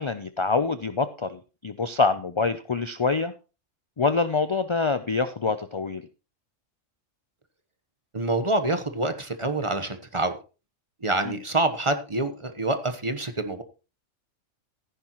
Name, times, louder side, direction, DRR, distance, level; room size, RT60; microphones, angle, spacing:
voice 1, 0.0-3.3 4.0-6.0 11.2-11.4, left 4 dB, 50° left, 12 dB, 0.3 m, -25 dB
voice 2, 8.1-10.4 11.0-13.6, right 2 dB, 25° right, 8 dB, 1.0 m, -26 dB
14.5 x 10.5 x 3.0 m, 0.32 s
omnidirectional pair, 1.3 m